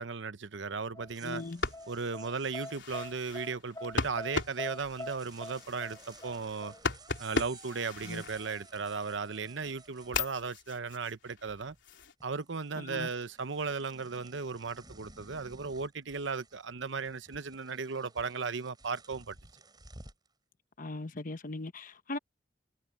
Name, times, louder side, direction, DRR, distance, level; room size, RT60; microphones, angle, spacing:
voice 1, 0.0-1.4 1.9-6.7 7.2-11.7 12.2-19.4, right 4 dB, 75° right, 0.9 m, -36 dB
sound 1, 0.9-6.8, left 1 dB, 20° left, 2.6 m, -44 dB
sound 2, 1.1-10.9 11.2-11.9 12.2-20.3, right 3 dB, 25° right, 7.3 m, -56 dB
voice 2, 1.2-1.6 8.0-8.2 12.7-13.1 20.8-22.2, left 2 dB, 45° left, 1.0 m, -39 dB
sound 3, 1.4-9.0 9.5-12.1, left 3 dB, 70° left, 4.0 m, -38 dB
head